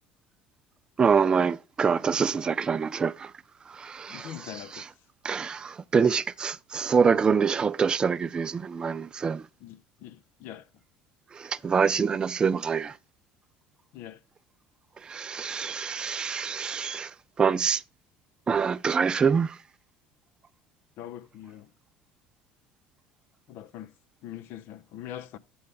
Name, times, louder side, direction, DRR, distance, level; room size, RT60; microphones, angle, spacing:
voice 1, 1.0-3.3 3.7-4.3 4.8-4.9 5.2-9.5 11.3-13.0 15.0-17.8 18.5-19.6, right 6 dB, 25° right, 0.3 m, -25 dB
voice 2, 4.1-4.9 9.6-10.7 13.9-14.2 21.0-21.7 23.5-23.9 24.2-25.4, left 11 dB, 65° left, 0.6 m, -42 dB
8.1 x 7.8 x 3.5 m
supercardioid pair, 110°, 4 cm